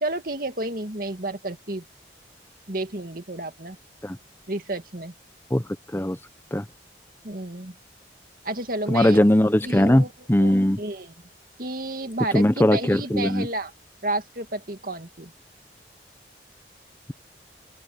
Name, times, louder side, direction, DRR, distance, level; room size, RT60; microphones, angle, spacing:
voice 1, 0.0-1.9 2.7-3.8 4.5-5.1 7.2-7.8 8.4-9.2 9.7-10.1 10.4-11.1 11.6-13.7 14.0-15.3, right 2 dB, 50° right, 2.2 m, -31 dB
voice 2, 8.9-10.8 12.3-13.5, left 1 dB, 10° left, 0.7 m, -19 dB
open air
head